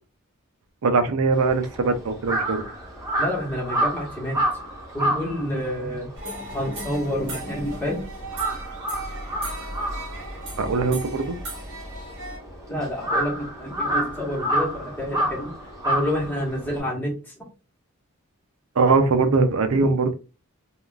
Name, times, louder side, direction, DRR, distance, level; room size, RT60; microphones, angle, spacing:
voice 1, 0.8-2.6 10.6-11.3 18.8-20.1, right 4 dB, 70° right, 0.5 m, -21 dB
Crow, 1.3-7.9 8.2-16.8, right 1 dB, 15° right, 0.9 m, -29 dB
voice 2, 3.2-4.4 4.9-6.1 6.5-8.0 12.7-15.6 15.8-17.4, equal, 10° left, 1.0 m, -28 dB
sound 1, 6.1-12.4, right 1 dB, 55° right, 1.2 m, -36 dB
3.6 x 2.3 x 2.3 m
head